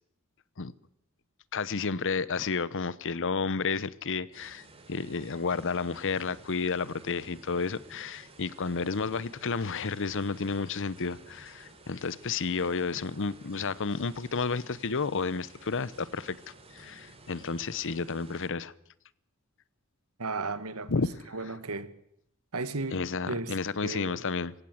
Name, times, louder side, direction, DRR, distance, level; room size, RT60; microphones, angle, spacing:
voice 1, 1.5-16.4 16.7-18.7 20.9-21.1 22.9-24.5, left 4 dB, 60° left, 0.9 m, -31 dB
sound 1, 4.3-18.5, right 2 dB, 25° right, 3.2 m, -53 dB
voice 2, 20.2-20.9 21.3-21.9 22.5-23.0 23.3-23.6 23.8-24.2, right 3 dB, 75° right, 1.6 m, -34 dB
25.5 x 16.0 x 7.9 m
head